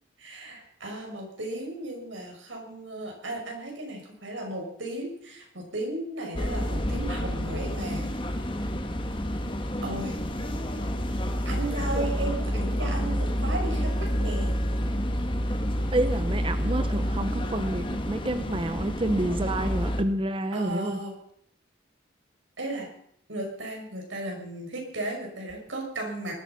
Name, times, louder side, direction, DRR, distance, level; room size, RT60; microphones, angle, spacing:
voice 1, 0.2-8.1 9.8-10.2 11.4-14.5 20.5-21.1 22.6-22.9 23.3-26.3, right 1 dB, 85° right, 1 dB, 6.1 m, -35 dB
sound 1, 6.4-20.0, equal, 25° left, 1.4 m, -29 dB
voice 2, 15.9-21.0, right 1 dB, 30° right, 10 dB, 0.8 m, -29 dB
19.5 x 13.0 x 5.8 m, 0.68 s
head